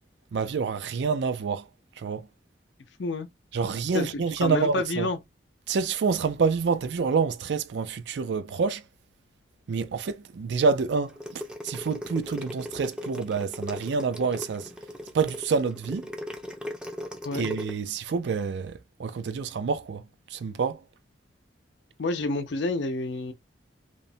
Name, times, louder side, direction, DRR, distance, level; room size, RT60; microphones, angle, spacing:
voice 1, 0.3-1.7 2.0-2.3 3.5-5.1 5.7-8.8 9.7-14.7 15.1-16.1 17.3-18.7 19.0-20.0 20.3-20.8, right 5 dB, 70° right, 0.4 m, -27 dB
voice 2, 3.9-5.2 17.2-17.4 22.0-23.3, left 3 dB, 85° left, 0.6 m, -29 dB
sound 1, 11.1-17.7, left 1 dB, 5° right, 0.4 m, -37 dB
2.9 x 2.1 x 2.6 m
head